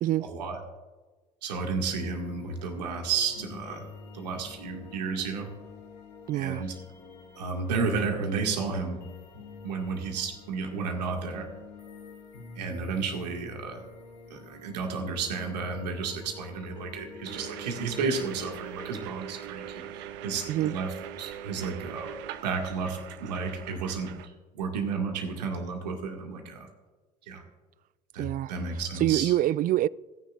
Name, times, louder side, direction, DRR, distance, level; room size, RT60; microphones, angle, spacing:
voice 1, 0.2-0.6 1.4-3.9 4.1-5.5 6.3-6.7 7.4-9.0 9.6-11.5 12.6-13.8 14.3-22.1 22.4-24.1 24.5-26.7 27.3-27.4 28.1-29.3, right 5 dB, 80° right, 2.0 m, -32 dB
sound 1, 1.5-19.0, left 4 dB, 90° left, 1.8 m, -48 dB
voice 2, 6.3-6.7 20.5-20.8 28.2-28.5 29.0-29.9, right 14 dB, 45° right, 0.4 m, -25 dB
sound 2, 17.2-24.3, right 10 dB, 65° right, 0.8 m, -41 dB
27.0 x 10.0 x 2.5 m
hypercardioid pair, 60°, 21 cm